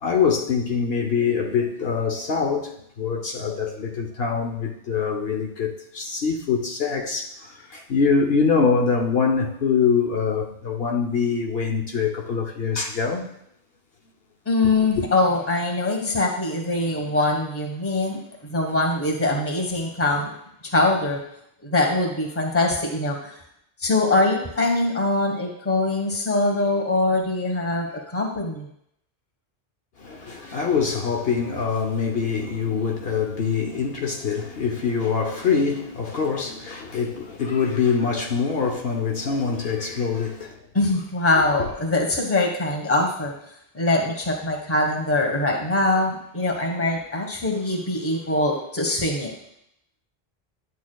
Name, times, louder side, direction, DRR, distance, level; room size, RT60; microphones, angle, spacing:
voice 1, 0.0-13.3 30.0-40.6 41.4-41.7, left 5 dB, 70° left, 1.0 m, -24 dB
voice 2, 14.5-18.2 18.5-20.3 20.6-21.2 21.6-23.3 23.8-27.9 28.1-28.7 40.7-43.3 43.7-49.3, left 2 dB, 15° left, 1.2 m, -23 dB
11.0 x 8.4 x 2.3 m
omnidirectional pair, 1.1 m